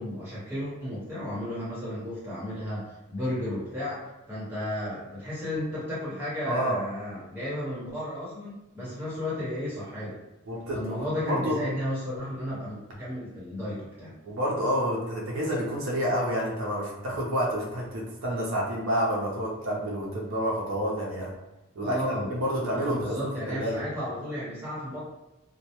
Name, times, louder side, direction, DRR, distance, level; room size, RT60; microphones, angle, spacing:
voice 1, 0.0-10.2 10.7-14.1 21.8-22.3 22.7-25.0, left 1 dB, 10° right, -10 dB, 0.9 m, -33 dB
voice 2, 6.5-6.8 10.5-11.6 14.2-21.3 21.7-23.8, equal, 70° right, -3 dB, 0.5 m, -29 dB
2.1 x 2.1 x 2.8 m, 0.97 s
head